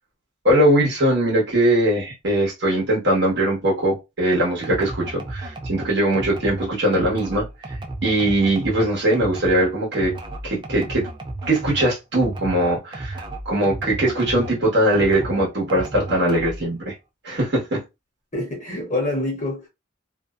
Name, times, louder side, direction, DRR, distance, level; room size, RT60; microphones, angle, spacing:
voice 1, 0.4-7.4 8.0-10.1 10.4-11.1 11.5-16.9 17.2-17.8, right 1 dB, 55° right, 1.1 m, -21 dB
sound 1, 4.6-14.6 14.9-16.7, right 2 dB, 25° right, 0.3 m, -33 dB
voice 2, 18.3-19.7, left 2 dB, 35° left, 0.7 m, -26 dB
2.6 x 2.1 x 2.4 m
head